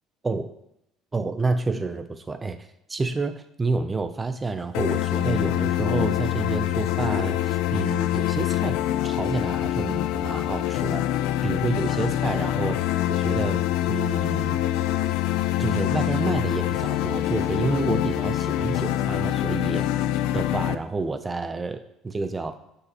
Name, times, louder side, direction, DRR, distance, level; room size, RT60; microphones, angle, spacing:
voice 1, 1.1-2.6 2.9-8.8 9.0-11.0 11.4-13.6 13.9-14.6 15.6-19.9 20.3-22.6, right 3 dB, 15° right, 10 dB, 0.4 m, -29 dB
sound 1, 4.7-20.8, left 13 dB, 85° left, 0.4 m, -25 dB
12.0 x 5.4 x 2.9 m, 0.79 s
cardioid pair, 160°, 0 cm